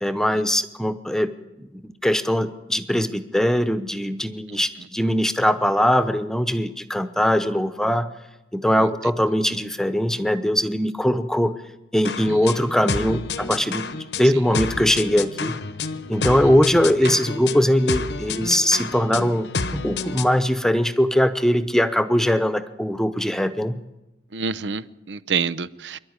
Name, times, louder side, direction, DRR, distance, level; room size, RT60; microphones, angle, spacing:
voice 1, 0.0-1.3 1.6-8.1 8.5-11.5 11.9-13.9 14.1-15.6 16.1-23.8, equal, 5° left, 0.8 m, -21 dB
sound 1, 12.0-20.4, left 4 dB, 75° left, 1.1 m, -30 dB
voice 2, 24.3-26.0, right 5 dB, 85° right, 0.7 m, -28 dB
25.5 x 11.5 x 9.7 m
head